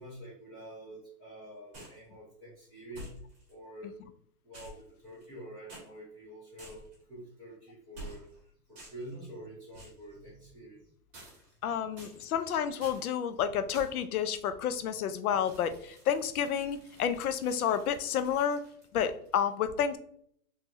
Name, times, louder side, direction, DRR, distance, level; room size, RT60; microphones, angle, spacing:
voice 1, 0.0-3.1 3.5-3.9 4.4-6.8 7.1-8.2 8.7-10.9, right 1 dB, 10° left, -8 dB, 0.7 m, -47 dB
sound 1, 1.7-2.0 2.9-3.5 4.5-5.4 5.7-5.9 6.6-7.0 7.9-8.4 8.7-9.1 9.7-10.0 11.1-11.6 12.0-12.4 12.8-13.1 13.7-14.1 15.4-19.4, right 1 dB, 15° right, 1.1 m, -50 dB
voice 2, 11.6-18.6 18.9-20.0, left 8 dB, 65° left, 10 dB, 0.5 m, -30 dB
3.7 x 2.8 x 2.9 m, 0.64 s
hypercardioid pair, 180°, 48 cm